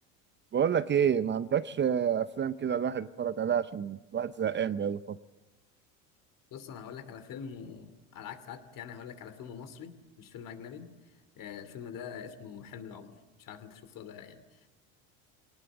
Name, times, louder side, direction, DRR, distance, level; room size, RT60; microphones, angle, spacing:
voice 1, 0.5-5.2, right 8 dB, 25° right, 14 dB, 0.7 m, -29 dB
voice 2, 6.5-9.9 10.2-14.7, left 7 dB, 55° left, 10 dB, 2.9 m, -44 dB
23.5 x 19.0 x 8.2 m, 1.1 s
supercardioid pair, 95°, 40 cm